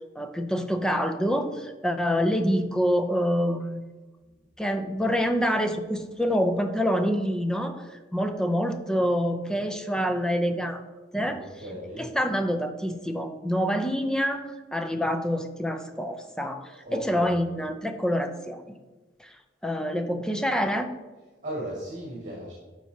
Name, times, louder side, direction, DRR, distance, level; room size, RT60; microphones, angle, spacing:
voice 1, 0.2-3.8 4.6-10.8 11.1-11.4 12.0-18.6 19.2-19.3 19.6-20.9, equal, 5° left, 7 dB, 0.5 m, -26 dB
voice 2, 11.2-12.1 16.8-17.3 21.4-22.5, right 1 dB, 45° right, -5 dB, 2.0 m, -36 dB
12.0 x 4.6 x 2.8 m, 1.2 s
head